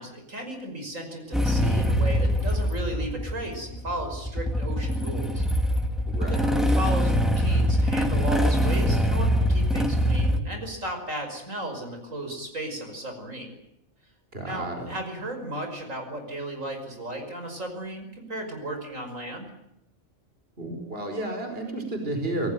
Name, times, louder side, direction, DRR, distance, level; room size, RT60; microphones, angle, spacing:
voice 1, 0.0-5.4 6.2-13.5 14.4-19.5, right 1 dB, 70° right, 5 dB, 6.1 m, -35 dB
Motorcycle / Engine starting, 1.3-10.4, equal, ahead, 2.7 m, -23 dB
voice 2, 6.1-6.5 14.3-14.9 20.6-22.5, right 2 dB, 45° right, 5 dB, 5.2 m, -32 dB
27.0 x 19.0 x 9.3 m, 0.84 s
omnidirectional pair, 1.4 m